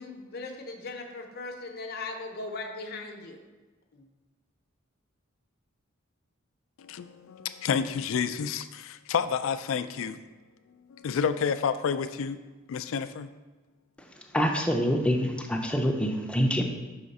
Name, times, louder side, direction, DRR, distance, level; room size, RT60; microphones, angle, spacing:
voice 1, 0.0-3.4 3.9-4.0, left 3 dB, 50° left, 2 dB, 0.7 m, -38 dB
voice 2, 6.8-10.2 10.9-12.4 12.7-13.3, left 6 dB, 70° left, 12 dB, 0.3 m, -29 dB
voice 3, 14.0-16.6, equal, 5° left, 2 dB, 0.5 m, -26 dB
5.7 x 3.6 x 5.3 m, 1.2 s
head